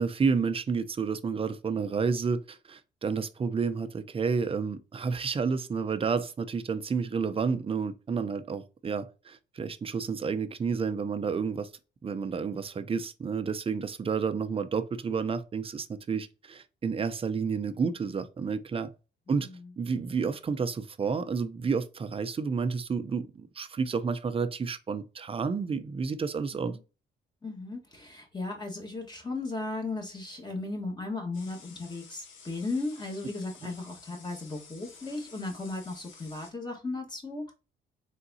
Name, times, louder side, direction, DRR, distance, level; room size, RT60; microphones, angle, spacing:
voice 1, 0.0-11.7 12.0-18.9 19.3-19.5 19.8-26.8, right 5 dB, 30° right, 0.5 m, -30 dB
voice 2, 19.3-19.7 26.5-26.8 27.4-37.5, left 3 dB, 20° left, 1.4 m, -36 dB
sound 1, 31.3-36.5, left 5 dB, 80° left, 1.0 m, -52 dB
3.9 x 3.6 x 2.7 m
cardioid pair, 90°, 20 cm